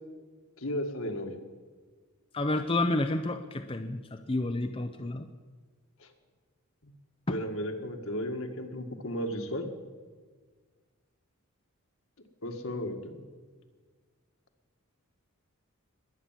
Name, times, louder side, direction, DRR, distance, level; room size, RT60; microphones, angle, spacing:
voice 1, 0.6-1.4 7.3-9.7 12.4-13.2, equal, 70° left, 4 dB, 1.9 m, -34 dB
voice 2, 2.3-5.2 7.3-7.4, left 2 dB, 25° left, 6 dB, 0.6 m, -30 dB
21.0 x 8.7 x 7.5 m, 1.5 s
head